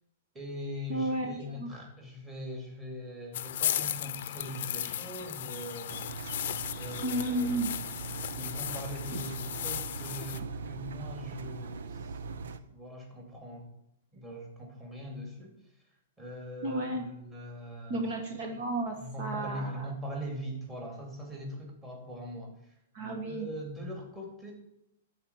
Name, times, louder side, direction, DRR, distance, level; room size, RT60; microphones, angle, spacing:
voice 1, 0.3-6.2 6.8-7.5 8.3-13.7 14.1-15.5 16.2-18.0 18.5-18.6 19.0-22.7 23.3-24.5, equal, 10° right, -1 dB, 2.5 m, -41 dB
voice 2, 0.9-1.7 7.0-7.7 9.1-9.2 16.6-17.0 17.9-19.9 22.9-23.5, right 1 dB, 40° right, 3 dB, 1.4 m, -33 dB
sound 1, 3.3-10.4, left 11 dB, 55° left, 0.7 m, -36 dB
Engine, 5.9-12.6, right 5 dB, 80° right, 0.8 m, -41 dB
12.5 x 4.5 x 8.0 m, 0.79 s
hypercardioid pair, 160°, 0 cm